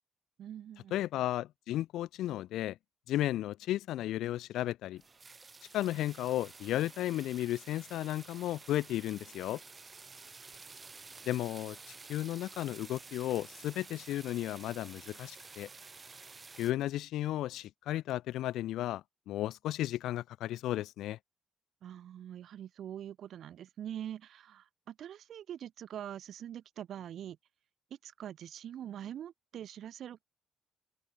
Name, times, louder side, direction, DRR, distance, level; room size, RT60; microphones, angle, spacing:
voice 1, 0.4-1.0 21.8-27.4 28.0-30.2, right 10 dB, 70° right, 5.2 m, -44 dB
voice 2, 0.9-2.8 3.1-5.0 5.7-9.6 11.3-11.8 12.1-15.7 16.6-21.2, left 14 dB, 85° left, 1.0 m, -34 dB
sound 1, 5.0-16.7, right 4 dB, 30° right, 4.0 m, -51 dB
open air
cardioid pair, 90°, 0 cm